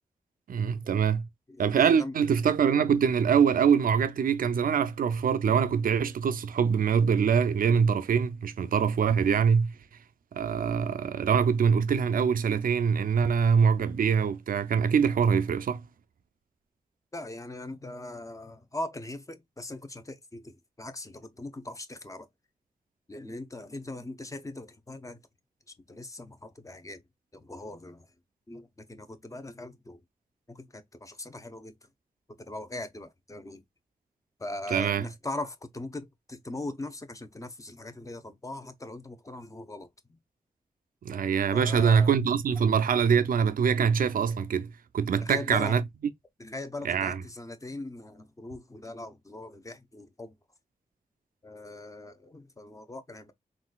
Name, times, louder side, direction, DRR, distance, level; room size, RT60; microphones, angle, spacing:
voice 1, 0.5-1.3 1.6-9.7 10.3-15.8 34.7-35.0 41.0-45.8 46.8-47.2, right 6 dB, 75° right, 0.4 m, -24 dB
voice 2, 1.5-2.2 17.1-22.3 23.1-25.2 25.7-27.0 27.3-28.1 28.5-30.0 30.5-31.8 32.5-33.6 34.4-40.2 41.5-42.2 45.2-45.8 46.4-50.3 51.4-53.3, left 2 dB, 20° left, 0.7 m, -40 dB
3.8 x 2.4 x 2.2 m
cardioid pair, 55°, 15 cm